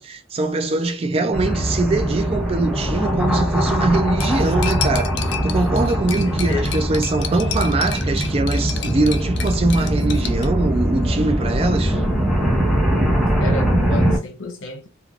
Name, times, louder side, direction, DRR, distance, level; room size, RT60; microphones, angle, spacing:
voice 1, 0.0-12.0, right 2 dB, 30° right, 0.3 m, -22 dB
sound 1, 1.3-14.2, equal, ahead, 0.7 m, -21 dB
Cutlery silverware, 4.2-10.5, left 8 dB, 60° left, 0.4 m, -32 dB
voice 2, 6.2-6.8 13.4-14.9, left 2 dB, 85° left, 0.8 m, -31 dB
3.1 x 2.3 x 2.4 m
head